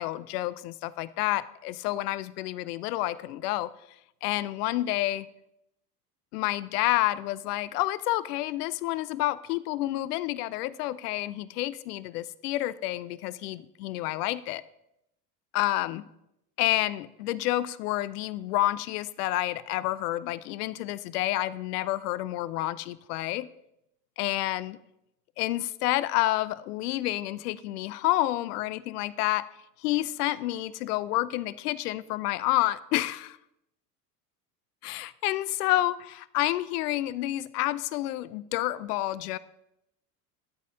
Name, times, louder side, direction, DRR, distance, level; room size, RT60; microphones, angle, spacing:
voice 1, 0.0-3.7 4.2-5.3 6.3-14.6 15.5-16.0 16.6-23.5 24.2-24.8 25.4-29.5 29.8-33.4 34.8-39.4, left 16 dB, 70° left, 18 dB, 0.5 m, -29 dB
12.0 x 4.3 x 3.5 m, 0.82 s
hypercardioid pair, 85°, 50 cm